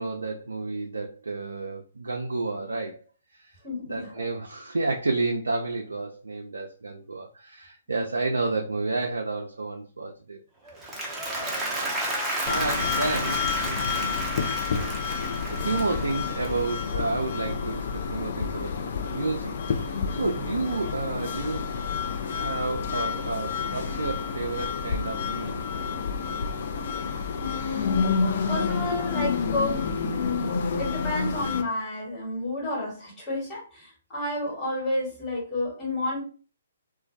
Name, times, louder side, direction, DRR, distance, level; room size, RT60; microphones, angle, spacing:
voice 1, 0.0-3.0 3.3-3.5 3.8-10.4 11.4-12.0 12.5-14.2 15.5-19.5 19.8-21.7 22.3-25.6 26.2-26.4, right 3 dB, 80° right, 0.3 m, -31 dB
voice 2, 3.6-4.2 27.4-28.2 28.5-36.2, left 2 dB, 15° left, 1.3 m, -31 dB
Applause, 10.7-17.0, right 1 dB, 10° right, 0.6 m, -32 dB
sound 1, 12.5-31.6, left 5 dB, 50° left, 0.4 m, -29 dB
2.2 x 2.2 x 2.5 m
figure-of-eight pair, 130°, 0 cm